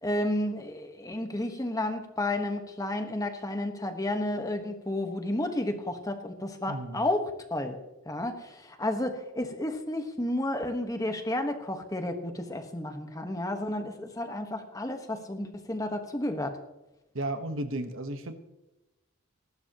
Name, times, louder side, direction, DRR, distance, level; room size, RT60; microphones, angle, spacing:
voice 1, 0.0-7.8 8.0-16.6, left 1 dB, 15° left, 5 dB, 1.3 m, -32 dB
voice 2, 6.7-7.1 17.1-18.3, right 1 dB, 60° right, 8 dB, 1.2 m, -34 dB
22.0 x 12.0 x 3.0 m, 0.97 s
head